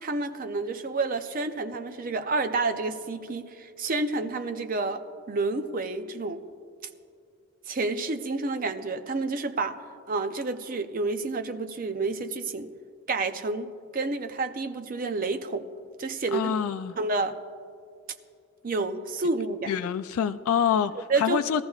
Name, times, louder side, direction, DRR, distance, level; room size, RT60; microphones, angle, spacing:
voice 1, 0.0-6.4 7.7-9.8 10.1-12.7 13.1-15.7 16.0-16.5 17.0-17.4 18.6-19.7 21.1-21.6, right 3 dB, 40° right, 9 dB, 0.5 m, -29 dB
voice 2, 16.3-17.0 19.7-21.6, left 8 dB, 75° left, 9 dB, 0.3 m, -26 dB
20.0 x 14.0 x 2.4 m, 2.4 s
head